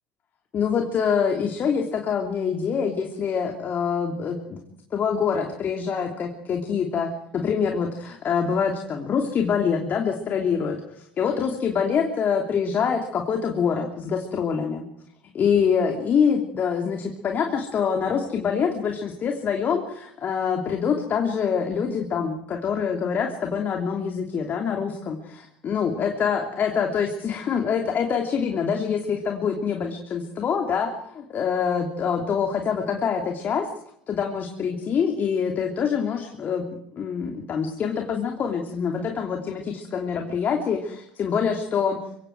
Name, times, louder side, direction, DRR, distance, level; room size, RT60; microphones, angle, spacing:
voice 1, 0.5-4.6 4.9-14.8 15.3-33.7 34.1-36.7 36.9-42.0, left 6 dB, 40° left, 3 dB, 3.1 m, -25 dB
25.0 x 24.5 x 4.7 m, 0.73 s
figure-of-eight pair, 70°, 5 cm